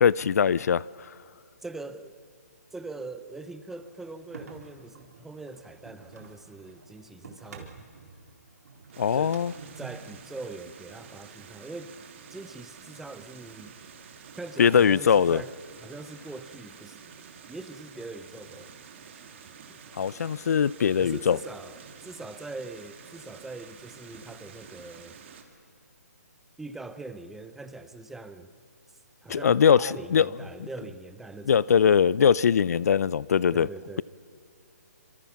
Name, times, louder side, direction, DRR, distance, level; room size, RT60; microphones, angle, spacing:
voice 1, 0.0-0.8 9.0-9.5 14.6-15.4 20.0-21.4 29.3-30.3 31.5-33.7, left 7 dB, 65° left, 0.5 m, -21 dB
voice 2, 1.6-2.2 2.7-7.9 9.1-9.4 9.8-12.0 12.3-13.7 14.3-15.5 15.8-17.0 17.5-18.7 19.7-19.8 21.0-25.2 26.6-28.5 29.2-31.7 33.5-34.0, right 3 dB, 5° right, 0.7 m, -42 dB
sound 1, 3.7-10.1, right 4 dB, 65° right, 3.9 m, -48 dB
sound 2, 8.9-25.4, right 7 dB, 45° right, 2.6 m, -49 dB
26.0 x 25.5 x 5.9 m
hypercardioid pair, 155°, 9 cm